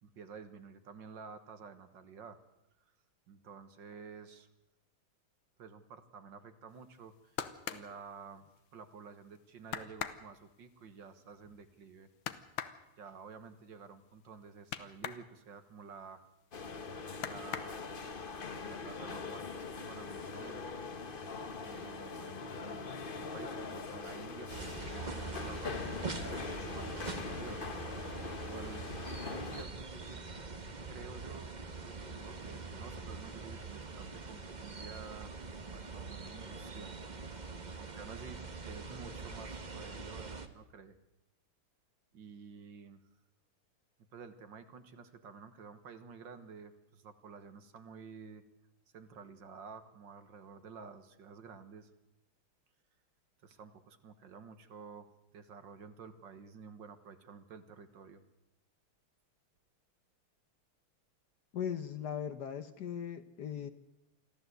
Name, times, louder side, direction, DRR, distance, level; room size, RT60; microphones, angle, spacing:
voice 1, 0.0-2.4 3.3-4.5 5.6-7.4 7.7-8.4 8.7-12.1 13.0-16.3 17.3-17.9 18.5-20.7 21.6-22.9 23.2-27.7 28.5-28.9 29.2-30.2 30.8-31.5 31.8-35.3 35.7-37.0 37.8-40.9 42.1-43.0 44.1-48.4 48.9-51.9 53.4-55.1 55.3-58.2, right 5 dB, 60° right, 10 dB, 1.9 m, -51 dB
sound 1, 6.9-8.9 9.3-9.4 9.7-15.3 15.6-16.7 17.1-18.2 18.6-19.3 19.5-20.2 20.6-20.7, left 9 dB, 75° left, 1.8 m, -43 dB
sound 2, 16.5-29.7, left 4 dB, 35° left, 0.9 m, -42 dB
sound 3, 24.5-40.5, right 4 dB, 25° right, 1.1 m, -44 dB
voice 2, 61.5-63.7, left 8 dB, 60° left, 11 dB, 1.3 m, -38 dB
24.0 x 14.5 x 8.0 m, 0.94 s
omnidirectional pair, 2.3 m